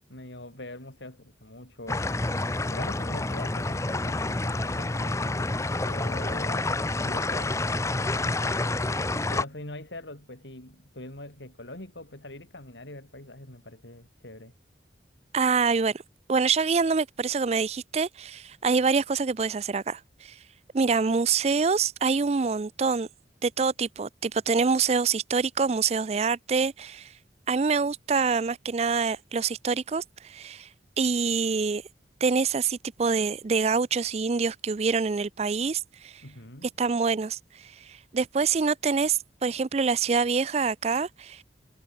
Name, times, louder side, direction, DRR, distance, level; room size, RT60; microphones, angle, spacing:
voice 1, 0.0-2.1 2.7-5.5 5.8-6.7 7.0-7.6 8.4-14.5 36.2-36.7, left 1 dB, 85° left, 5.6 m, -43 dB
sound 1, 1.9-9.4, left 2 dB, 15° left, 0.7 m, -28 dB
voice 2, 15.3-15.9 16.3-20.3 20.7-23.1 23.4-27.1 27.5-30.7 31.0-31.8 32.2-36.1 36.8-37.4 38.1-41.4, right 5 dB, 35° right, 0.4 m, -25 dB
head